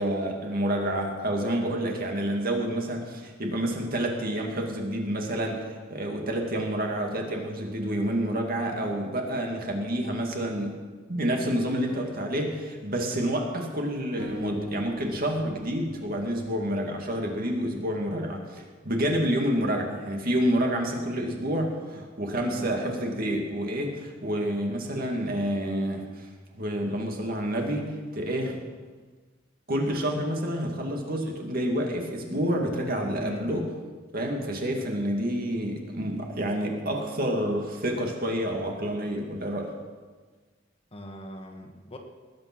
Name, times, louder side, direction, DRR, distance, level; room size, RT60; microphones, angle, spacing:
voice 1, 0.0-10.8 11.1-26.3 26.5-28.6 29.7-33.7 34.1-39.7, equal, 50° right, 2 dB, 2.2 m, -28 dB
sound 1, 14.2-17.4, equal, 80° right, 3.9 m, -41 dB
voice 2, 33.2-33.6 40.9-42.0, equal, 30° left, 3 dB, 1.6 m, -41 dB
19.5 x 8.6 x 6.2 m, 1.4 s
head